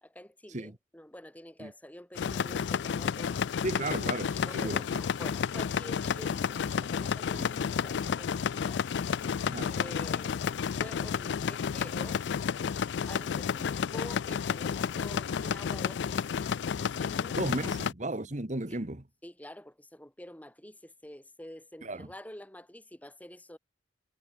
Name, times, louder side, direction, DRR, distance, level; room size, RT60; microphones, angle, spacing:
voice 1, 0.0-3.4 4.4-8.8 9.6-10.4 10.8-12.2 13.1-16.5 16.8-17.7 18.7-18.8 19.2-23.6, left 1 dB, 10° left, 2.0 m, -48 dB
sound 1, 2.2-17.9, left 7 dB, 70° left, 0.4 m, -31 dB
voice 2, 3.6-4.9 7.4-7.5 9.4-9.7 17.3-19.0 21.8-22.1, right 2 dB, 40° right, 1.6 m, -35 dB
head